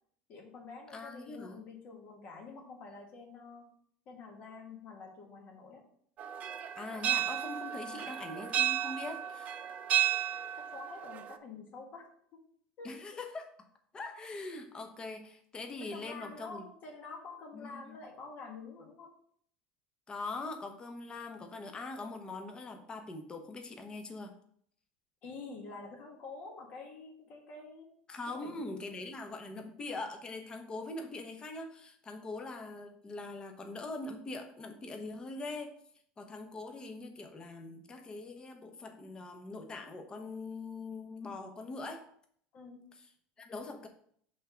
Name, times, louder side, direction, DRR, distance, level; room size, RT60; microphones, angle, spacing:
voice 1, 0.3-3.7 4.0-5.9 7.8-8.1 10.6-12.1 12.3-12.4 12.8-13.0 15.8-19.1 25.2-27.9 28.3-28.8 42.5-42.9, left 4 dB, 50° left, 0 dB, 1.6 m, -48 dB
voice 2, 0.9-1.6 6.8-9.6 12.8-13.5 13.9-16.6 17.5-18.0 20.1-24.3 28.1-35.8 36.2-42.1 43.4-43.9, left 3 dB, 25° left, 5 dB, 1.0 m, -42 dB
sound 1, 6.2-11.4, right 11 dB, 40° right, 0.5 m, -33 dB
5.5 x 3.8 x 5.7 m, 0.63 s
supercardioid pair, 125°, 4 cm